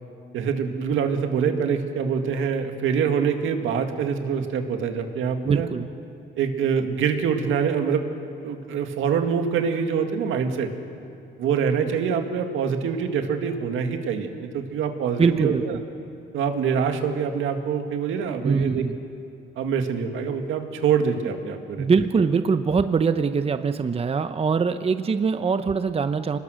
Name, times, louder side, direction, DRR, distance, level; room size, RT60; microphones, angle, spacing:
voice 1, 0.3-5.7 6.4-8.0 8.4-10.7 11.4-15.8 16.3-18.8 19.6-21.9, right 6 dB, 85° right, 5 dB, 2.0 m, -25 dB
voice 2, 5.4-5.9 15.2-15.8 18.4-19.0 21.8-26.4, right 5 dB, 30° right, 10 dB, 0.8 m, -23 dB
25.0 x 19.5 x 6.4 m, 2.6 s
cardioid pair, 90°, 20 cm